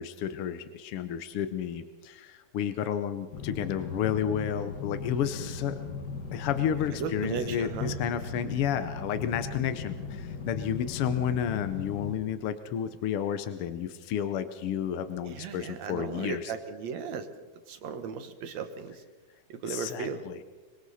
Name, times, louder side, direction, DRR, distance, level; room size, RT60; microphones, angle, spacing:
voice 1, 0.0-5.8 6.3-16.5 19.7-20.4, left 9 dB, 70° left, 10 dB, 1.4 m, -31 dB
sound 1, 3.3-12.1, left 4 dB, 40° left, 1.9 m, -38 dB
voice 2, 7.0-8.0 15.3-17.3 17.7-18.9 19.5-20.2, right 6 dB, 65° right, 9 dB, 2.5 m, -36 dB
26.0 x 24.0 x 4.2 m, 1.3 s
omnidirectional pair, 3.5 m